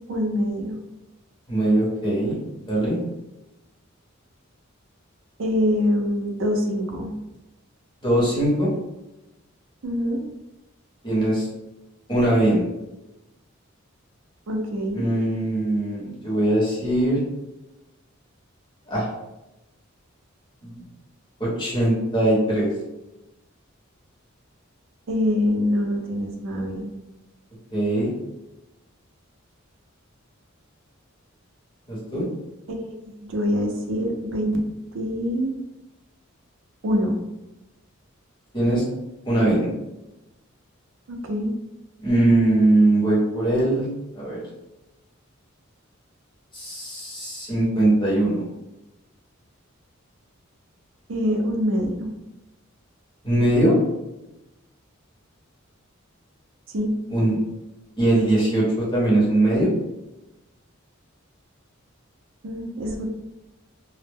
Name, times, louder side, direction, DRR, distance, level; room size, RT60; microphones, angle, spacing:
voice 1, 0.1-0.8 5.4-7.1 9.8-10.2 14.5-15.0 25.1-26.9 33.0-34.6 34.9-35.5 36.8-37.2 41.1-41.5 51.1-52.1 56.7-56.9 62.4-63.1, equal, 65° right, 2 dB, 0.5 m, -24 dB
voice 2, 1.5-2.3 2.7-3.0 8.0-8.7 11.0-11.5 12.1-12.6 14.9-17.2 18.9-19.1 20.6-20.8 21.4-22.7 27.7-28.1 31.9-32.3 38.5-38.8 39.2-39.7 42.0-43.9 44.1-44.4 46.5-48.4 53.2-53.7 57.1-57.4 58.0-59.7, right 1 dB, 25° left, -7 dB, 0.9 m, -21 dB
2.0 x 2.0 x 3.3 m, 0.95 s
head